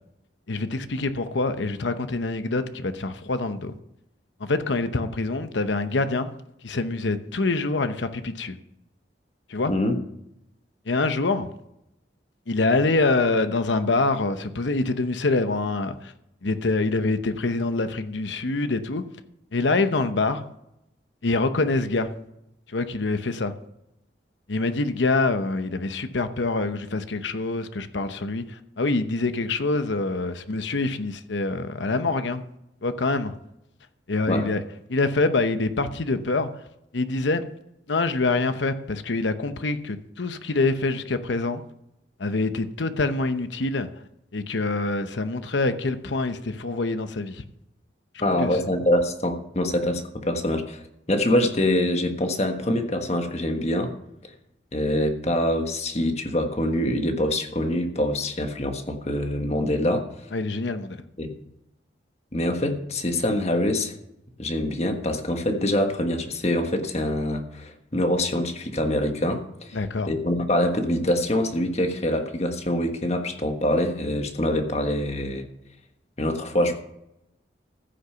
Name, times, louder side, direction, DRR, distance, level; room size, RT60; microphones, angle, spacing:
voice 1, 0.5-3.7 4.4-6.3 6.6-8.5 9.5-9.7 10.9-11.5 12.5-16.1 16.4-19.0 19.5-20.4 21.2-22.1 22.7-23.5 24.5-32.4 32.8-33.3 34.1-34.6 34.9-36.5 36.9-37.5 37.9-41.6 42.2-43.9 44.3-47.4 48.4-48.5 60.3-61.0 69.7-70.1, left 3 dB, 80° left, 10 dB, 0.9 m, -25 dB
voice 2, 48.2-50.8 51.1-53.9 54.7-60.1 61.2-61.3 62.3-63.9 64.4-69.8 70.1-75.4 76.2-76.8, left 1 dB, 35° left, 5 dB, 1.4 m, -25 dB
15.0 x 6.8 x 5.7 m, 0.82 s
head